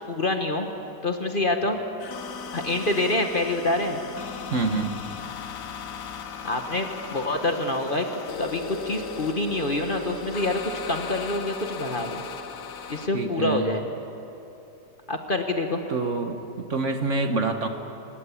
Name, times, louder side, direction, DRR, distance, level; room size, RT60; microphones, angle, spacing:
voice 1, 0.1-0.7 1.0-1.8 2.5-4.0 6.4-8.1 8.4-12.2 12.9-13.8 15.1-15.8, left 2 dB, 30° left, 5 dB, 1.4 m, -26 dB
sound 1, 2.0-13.1, left 6 dB, 75° left, 1.7 m, -37 dB
voice 2, 4.5-5.0 13.1-13.7 15.9-17.7, right 3 dB, 45° right, 6 dB, 1.4 m, -26 dB
28.5 x 16.5 x 8.5 m, 2.9 s
omnidirectional pair, 1.8 m